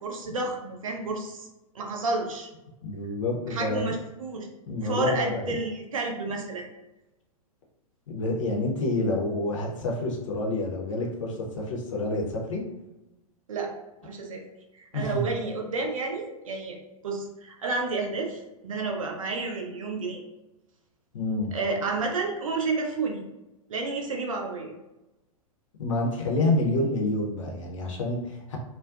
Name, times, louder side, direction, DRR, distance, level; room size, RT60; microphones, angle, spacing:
voice 1, 0.0-1.5 1.7-2.5 3.5-4.5 4.8-6.7 13.5-13.7 14.0-14.4 14.7-16.8 17.0-20.2 21.5-23.2 23.7-24.7, right 3 dB, 65° right, 2 dB, 0.5 m, -30 dB
voice 2, 2.8-3.9 4.7-5.5 8.1-12.6 14.9-15.2 21.1-21.5 25.8-28.6, left 2 dB, 55° left, -1 dB, 0.7 m, -28 dB
2.5 x 2.2 x 2.4 m, 1.0 s
figure-of-eight pair, 100°, 19 cm